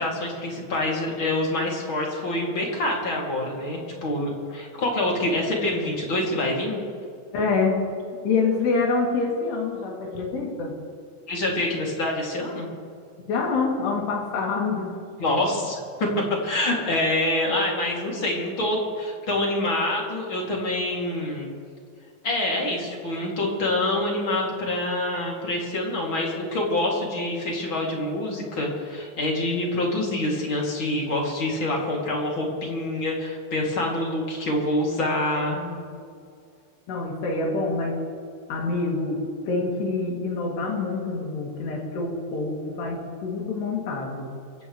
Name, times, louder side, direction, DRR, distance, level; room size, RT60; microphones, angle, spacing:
voice 1, 0.0-6.8 11.3-12.7 15.2-16.1 16.4-21.5 22.2-35.6, left 1 dB, 35° left, -2 dB, 2.8 m, -26 dB
voice 2, 7.3-7.8 8.2-10.7 13.3-15.0 35.5-36.1 36.9-38.0 38.5-44.3, left 4 dB, 70° left, -1 dB, 4.7 m, -26 dB
27.5 x 15.5 x 3.2 m, 2.2 s
omnidirectional pair, 5.0 m